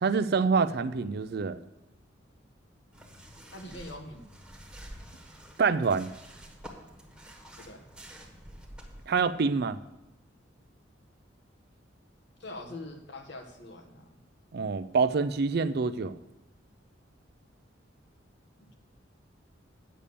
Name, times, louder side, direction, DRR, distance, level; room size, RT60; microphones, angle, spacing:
voice 1, 0.0-1.6 5.6-6.1 9.1-9.8 14.5-16.2, right 5 dB, 55° right, 13 dB, 0.4 m, -26 dB
sound 1, 2.9-9.2, equal, 5° right, 1.4 m, -49 dB
voice 2, 3.5-4.3 7.6-7.8 12.4-14.2 18.6-18.7, left 1 dB, 65° left, 5 dB, 1.4 m, -43 dB
8.7 x 6.8 x 6.9 m, 0.96 s
head